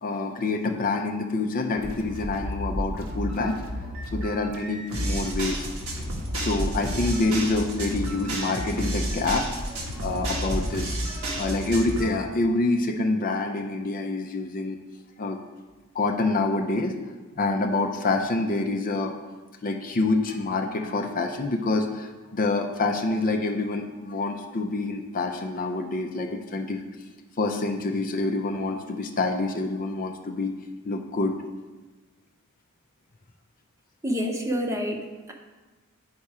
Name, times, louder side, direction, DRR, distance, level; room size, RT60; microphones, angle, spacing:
voice 1, 0.0-3.6 4.1-5.7 6.3-9.5 10.0-11.0 11.4-14.8 15.2-15.4 15.9-16.9 17.4-19.1 19.6-26.8 27.4-30.5 30.8-31.4, left 3 dB, 40° left, 4 dB, 0.5 m, -27 dB
sound 1, 1.8-12.1, equal, 75° right, 1.3 m, -31 dB
voice 2, 34.0-35.3, equal, 15° right, 1 dB, 0.8 m, -29 dB
9.6 x 4.3 x 4.8 m, 1.2 s
head